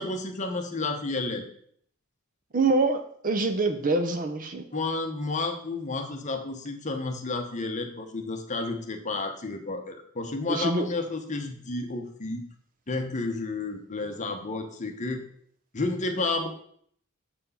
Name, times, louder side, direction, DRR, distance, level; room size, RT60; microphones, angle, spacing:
voice 1, 0.0-1.5 4.7-12.4 12.9-15.2 15.7-16.5, left 3 dB, 35° left, 4 dB, 1.0 m, -31 dB
voice 2, 2.5-4.6 10.5-10.9, right 3 dB, 40° right, 7 dB, 0.7 m, -25 dB
6.8 x 4.5 x 5.7 m, 0.63 s
head